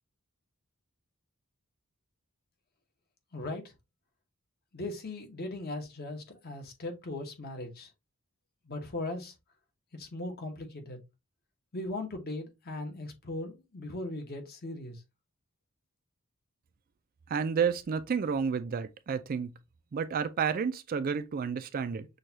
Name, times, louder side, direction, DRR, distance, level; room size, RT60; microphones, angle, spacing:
voice 1, 3.3-3.7 4.7-7.9 8.6-9.3 9.9-11.0 11.7-15.0, left 2 dB, 45° left, 0.9 m, -38 dB
voice 2, 17.3-19.5 19.9-22.1, right 6 dB, 40° right, 0.3 m, -30 dB
6.3 x 2.3 x 2.7 m
head